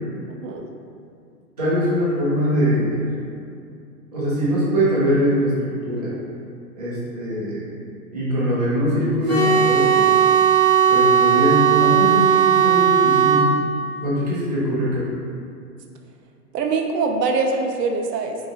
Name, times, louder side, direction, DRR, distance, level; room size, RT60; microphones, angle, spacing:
voice 1, 0.3-0.6 16.5-18.4, right 4 dB, 80° right, 3 dB, 0.6 m, -23 dB
voice 2, 1.6-3.1 4.1-6.1 6.8-7.7 8.1-10.1 10.9-13.5 14.0-15.0, equal, 25° right, -10 dB, 0.6 m, -22 dB
sound 1, 9.3-13.5, right 8 dB, 30° left, 0.4 m, -16 dB
3.8 x 2.7 x 2.8 m, 2.4 s
hypercardioid pair, 180°, 47 cm